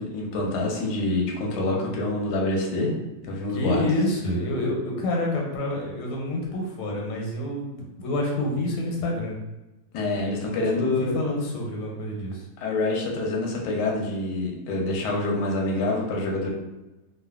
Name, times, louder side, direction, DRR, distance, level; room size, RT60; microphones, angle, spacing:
voice 1, 0.0-2.9 3.2-3.8 9.9-11.1 12.6-16.5, left 2 dB, 70° left, -1 dB, 1.0 m, -26 dB
voice 2, 3.5-9.3 10.5-12.5, left 1 dB, 85° left, -1 dB, 1.5 m, -28 dB
3.2 x 2.2 x 2.3 m, 1.0 s
omnidirectional pair, 2.3 m